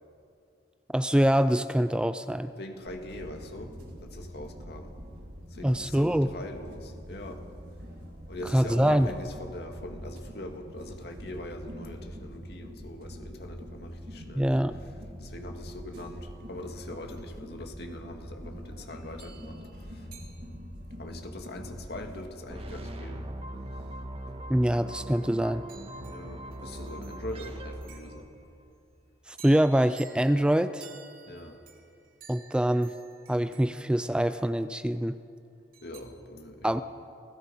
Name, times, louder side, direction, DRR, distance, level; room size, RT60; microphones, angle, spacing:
voice 1, 0.9-2.5 5.6-6.3 8.5-9.1 14.3-14.7 24.5-25.6 29.3-30.9 32.3-32.9 33.3-35.2 36.6-36.8, equal, 5° right, 12 dB, 0.4 m, -24 dB
voice 2, 2.6-3.7 4.0-5.0 5.5-7.5 8.3-14.5 15.2-20.1 21.0-23.3 26.0-28.3 31.3-31.6 35.8-36.8, left 1 dB, 65° left, 4 dB, 2.2 m, -42 dB
sound 1, 2.9-22.2, equal, 80° right, 4.6 m, -44 dB
sound 2, 18.9-21.1 25.7-28.5 29.4-34.7 35.7-36.0, right 7 dB, 55° right, 2.8 m, -54 dB
sound 3, 22.5-28.6, right 1 dB, 35° right, 1.5 m, -40 dB
28.0 x 17.5 x 5.6 m, 2.5 s
head